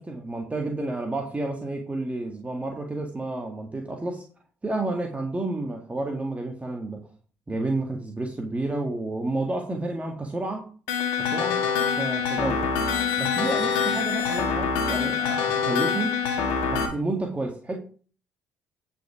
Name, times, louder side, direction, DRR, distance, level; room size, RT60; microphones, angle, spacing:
voice 1, 0.0-4.2 4.6-7.0 7.5-10.7 11.2-11.6 11.9-12.7 13.2-16.2 16.7-17.8, right 2 dB, 20° right, 2 dB, 1.9 m, -30 dB
sound 1, 10.9-16.9, left 6 dB, 75° left, 1.5 m, -25 dB
10.0 x 5.8 x 4.9 m, 0.40 s
hypercardioid pair, 50°, 7 cm